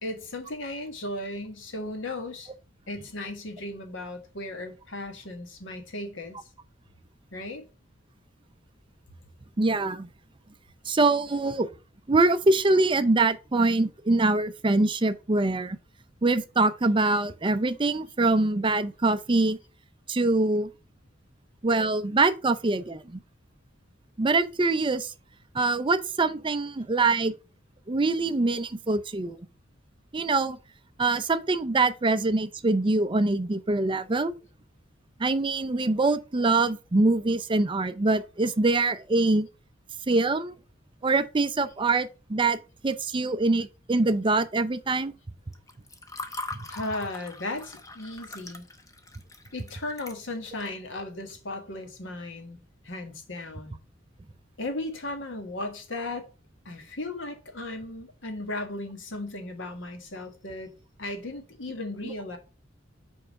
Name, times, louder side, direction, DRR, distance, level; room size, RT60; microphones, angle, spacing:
voice 1, 0.0-2.5 2.9-6.5 7.3-7.6 46.7-48.6 49.5-53.7 54.6-56.3 56.6-60.7 61.0-62.4, left 2 dB, 70° left, 1.5 m, -36 dB
voice 2, 9.6-10.1 10.9-11.7 12.1-15.8 16.2-19.6 20.1-20.7 21.6-23.2 24.2-25.1 25.5-27.3 27.9-29.4 30.1-30.6 31.0-34.3 35.2-39.5 40.1-40.5 41.0-42.6 42.8-45.1 62.0-62.1, right 3 dB, 25° right, 0.5 m, -24 dB
Water / Fill (with liquid), 45.5-50.7, left 2 dB, 15° left, 0.8 m, -41 dB
5.4 x 4.6 x 5.0 m
head